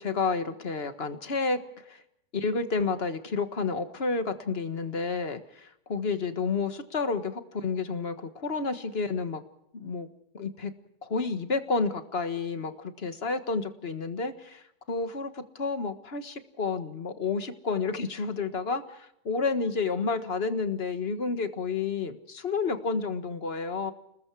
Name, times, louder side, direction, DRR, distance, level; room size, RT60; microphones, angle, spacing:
voice 1, 0.0-2.0 2.3-9.4 9.7-10.1 10.3-10.7 11.0-23.9, left 4 dB, 35° left, 9 dB, 1.6 m, -30 dB
29.5 x 20.5 x 4.7 m, 0.78 s
omnidirectional pair, 1.9 m